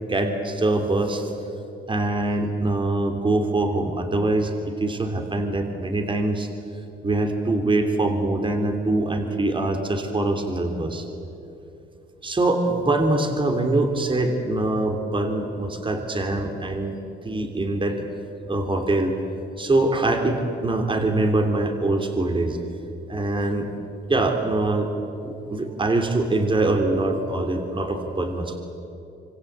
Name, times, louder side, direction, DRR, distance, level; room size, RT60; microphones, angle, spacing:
voice 1, 0.1-1.3 1.9-6.5 7.0-11.0 12.2-17.0 17.2-18.0 18.5-19.1 19.6-22.6 23.1-23.7 24.1-24.9 25.2-28.6, right 2 dB, 25° right, 4 dB, 3.1 m, -23 dB
26.5 x 25.5 x 8.2 m, 2.9 s
cardioid pair, 90°, 20 cm